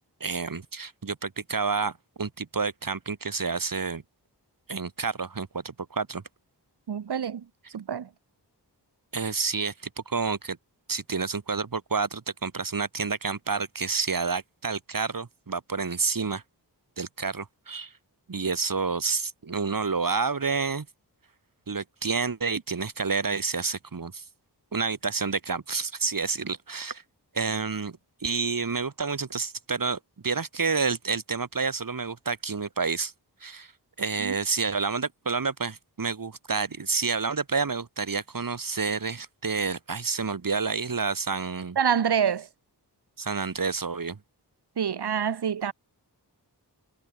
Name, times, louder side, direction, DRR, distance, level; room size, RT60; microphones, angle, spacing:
voice 1, 0.2-4.0 4.7-6.2 9.1-10.6 10.9-16.4 17.0-17.9 18.3-20.9 21.7-24.3 24.7-27.0 27.3-33.1 33.4-33.7 34.0-41.8 43.2-44.2, right 4 dB, 50° right, 1.8 m, -29 dB
voice 2, 6.9-7.4 7.7-8.1 34.2-34.4 41.8-42.5 44.8-45.7, right 8 dB, 70° right, 0.9 m, -26 dB
wide cardioid pair, 80°, 42 cm